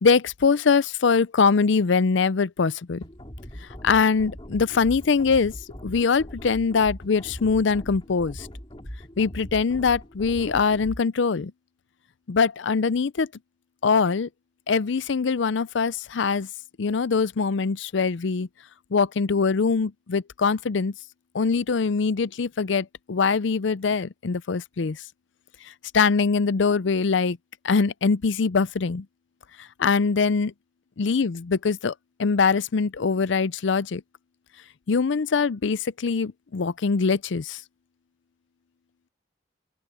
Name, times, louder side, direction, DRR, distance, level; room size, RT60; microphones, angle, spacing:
voice 1, 0.0-3.0 3.8-5.5 5.8-8.5 9.2-11.5 12.3-13.3 13.8-14.3 14.7-16.5 16.8-18.5 18.9-20.9 21.3-25.0 25.9-27.4 27.6-29.1 29.8-30.5 31.0-31.9 32.2-34.0 34.9-37.6, left 5 dB, 65° left, 0.5 m, -23 dB
sound 1, 3.0-11.0, equal, 25° left, 2.8 m, -40 dB
open air
head